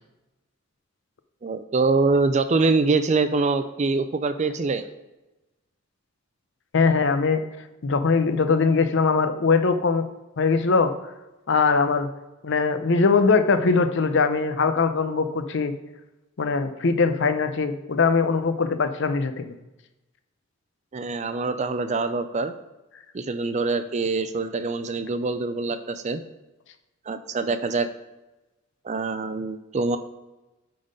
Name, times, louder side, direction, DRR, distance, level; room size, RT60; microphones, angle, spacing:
voice 1, 1.4-4.8 20.9-22.5 23.1-26.2 27.1-27.9 28.8-30.0, right 3 dB, 35° right, 11 dB, 0.4 m, -24 dB
voice 2, 6.7-7.4 7.8-10.1 10.4-10.9 11.5-12.1 12.4-15.7 16.4-19.6, left 4 dB, 65° left, 10 dB, 0.6 m, -21 dB
8.8 x 3.9 x 5.2 m, 1.0 s
head